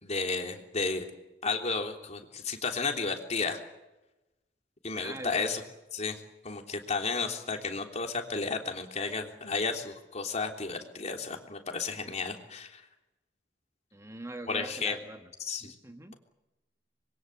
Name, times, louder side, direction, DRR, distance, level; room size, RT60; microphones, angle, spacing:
voice 1, 0.0-1.1 1.4-3.6 4.8-5.6 5.9-6.2 6.4-12.8 14.5-15.0 15.4-15.7, left 4 dB, 40° left, 3 dB, 3.3 m, -33 dB
voice 2, 4.9-5.5 13.9-15.3 15.6-16.1, right 1 dB, 15° right, 6 dB, 1.3 m, -42 dB
25.5 x 22.5 x 8.0 m, 1.0 s
head